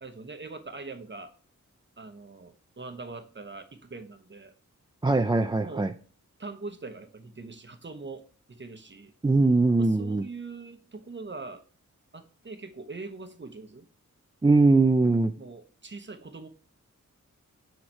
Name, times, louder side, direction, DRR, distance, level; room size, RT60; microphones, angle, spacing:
voice 1, 0.0-1.3 2.0-4.5 5.6-5.9 6.4-9.1 9.8-11.6 12.1-13.9 15.0-16.5, right 3 dB, 35° right, 7 dB, 0.9 m, -42 dB
voice 2, 5.0-5.9 9.2-10.2 14.4-15.3, right 3 dB, 15° right, 7 dB, 0.4 m, -21 dB
6.5 x 4.4 x 4.3 m, 0.39 s
wide cardioid pair, 80°, 32 cm